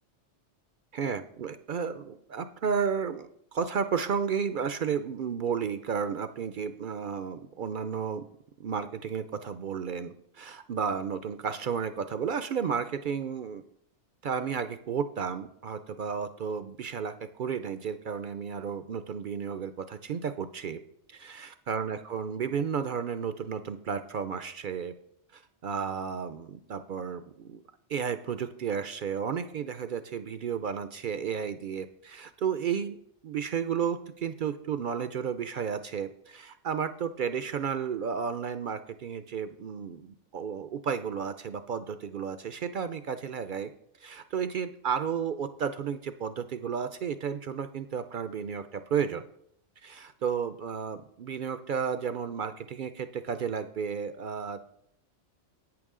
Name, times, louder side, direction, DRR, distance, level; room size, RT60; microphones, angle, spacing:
voice 1, 0.9-8.2 8.6-13.6 14.2-20.8 21.1-24.9 25.3-27.6 27.9-33.0 33.2-43.7 44.0-49.3 49.8-54.7, right 7 dB, 60° right, 11 dB, 0.5 m, -33 dB
10.5 x 8.9 x 3.7 m, 0.73 s
omnidirectional pair, 1.3 m